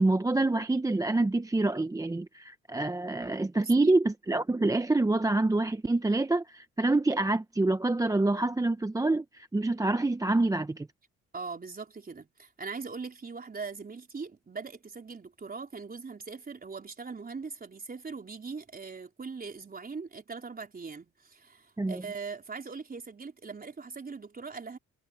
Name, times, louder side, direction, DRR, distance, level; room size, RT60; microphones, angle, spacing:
voice 1, 0.0-10.9 21.8-22.0, right 2 dB, 10° right, 0.7 m, -26 dB
voice 2, 3.6-3.9 11.3-24.8, right 4 dB, 30° right, 4.3 m, -41 dB
cardioid pair, 90°, 30 cm